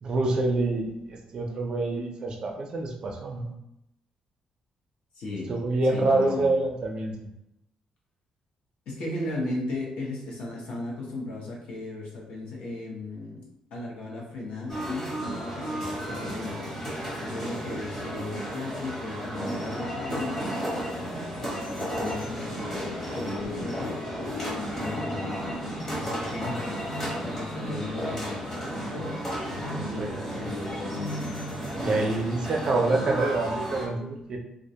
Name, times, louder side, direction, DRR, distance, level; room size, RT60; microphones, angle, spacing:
voice 1, 0.0-3.5 5.5-7.3 29.8-30.3 31.8-34.4, right 2 dB, 40° right, 1 dB, 0.4 m, -27 dB
voice 2, 5.2-5.5 5.9-6.5 8.9-13.4 13.7-15.1 15.5-20.5 21.4-24.0 24.7-31.2, left 2 dB, 70° left, -3 dB, 0.7 m, -36 dB
sound 1, 14.7-33.9, equal, 20° left, 0.8 m, -33 dB
sound 2, 16.7-25.6, left 3 dB, 90° left, 1.1 m, -43 dB
Bird, 20.0-32.2, equal, 45° left, 0.4 m, -43 dB
2.4 x 2.1 x 2.7 m, 0.84 s
cardioid pair, 165°, 2 cm